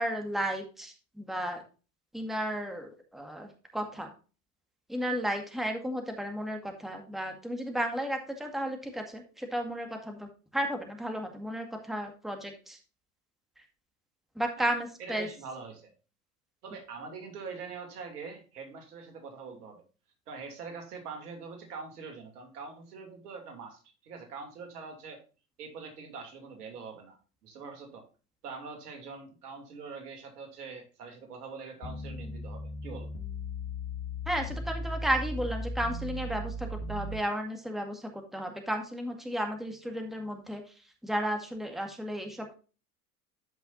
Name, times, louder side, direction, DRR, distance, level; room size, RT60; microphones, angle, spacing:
voice 1, 0.0-1.6 2.1-4.1 4.9-12.8 13.6-13.7 14.4-15.3 34.3-42.5, equal, ahead, 4 dB, 1.9 m, -33 dB
voice 2, 15.0-15.9 16.6-19.8 20.3-25.2 25.6-28.0 28.4-33.1, right 5 dB, 80° right, 4 dB, 2.9 m, -44 dB
sound 1, 31.8-37.2, left 1 dB, 50° left, 2.4 m, -37 dB
13.5 x 5.6 x 2.7 m, 0.35 s
hypercardioid pair, 85°, 46 cm